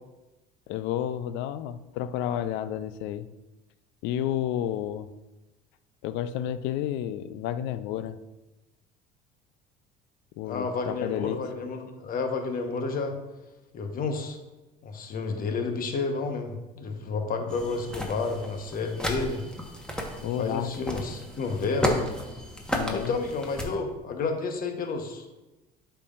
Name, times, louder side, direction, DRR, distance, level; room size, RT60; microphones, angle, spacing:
voice 1, 0.7-3.3 4.0-5.1 6.0-8.2 10.4-11.4 20.2-20.7 22.7-23.2, left 11 dB, 70° left, 15 dB, 0.4 m, -31 dB
voice 2, 10.4-13.1 13.7-14.4 14.8-19.4 20.1-22.1 22.9-25.2, left 4 dB, 45° left, 5 dB, 1.1 m, -31 dB
sound 1, 17.5-23.6, equal, 5° left, 1.2 m, -33 dB
8.3 x 5.8 x 2.5 m, 1.1 s
hypercardioid pair, 75°, 21 cm